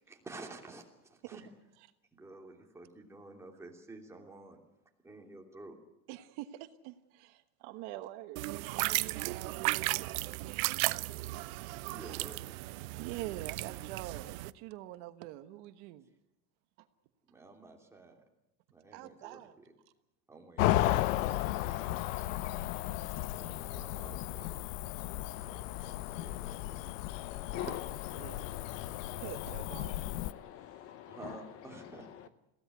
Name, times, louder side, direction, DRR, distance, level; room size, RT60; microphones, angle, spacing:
voice 1, 0.1-1.5 2.1-4.6 5.0-5.7 11.9-12.4 17.3-18.2 18.7-19.6 20.3-21.7 22.8-24.6 25.1-26.7 31.1-32.1, right 3 dB, 5° right, 2.9 m, -51 dB
voice 2, 6.1-8.4 8.7-10.6 10.9-11.3 11.9-12.0 13.0-16.1 16.8-16.9 18.9-19.5 27.6-27.8 28.1-28.5 29.1-30.4, right 15 dB, 55° right, 1.3 m, -46 dB
sound 1, 8.4-14.5, right 20 dB, 75° right, 0.8 m, -35 dB
Cricket / Motor vehicle (road), 20.6-30.3, left 15 dB, 70° left, 0.9 m, -34 dB
voice 3, 27.5-32.3, left 12 dB, 35° left, 0.8 m, -45 dB
22.5 x 16.5 x 9.4 m
supercardioid pair, 160°, 41 cm